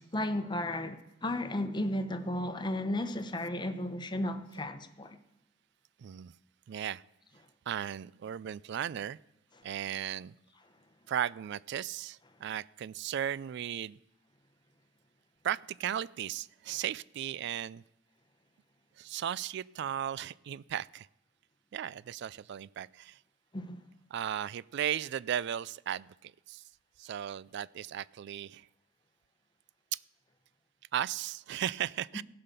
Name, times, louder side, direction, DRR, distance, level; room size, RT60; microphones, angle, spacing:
voice 1, 0.0-5.2 23.5-23.8, left 1 dB, 25° left, 0.9 m, -34 dB
voice 2, 6.0-6.3 6.7-7.0 7.7-9.2 9.6-10.3 11.1-14.0 15.4-17.8 19.0-21.1 21.7-23.2 24.1-26.6 27.0-28.7 30.9-32.2, right 10 dB, 60° right, 0.3 m, -36 dB
16.0 x 5.8 x 6.8 m
head